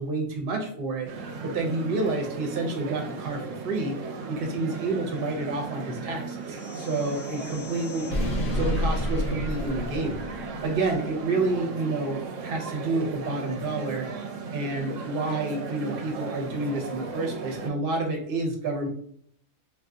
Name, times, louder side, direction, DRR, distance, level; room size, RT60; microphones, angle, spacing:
voice 1, 0.0-3.9 4.3-8.0 8.5-14.1 14.5-18.9, right 3 dB, 50° right, 2 dB, 0.8 m, -29 dB
sound 1, 1.1-17.7, right 4 dB, 75° right, 0.9 m, -36 dB
sound 2, 6.5-10.9, left 1 dB, 85° left, 1.0 m, -31 dB
2.5 x 2.3 x 3.7 m, 0.63 s
omnidirectional pair, 1.3 m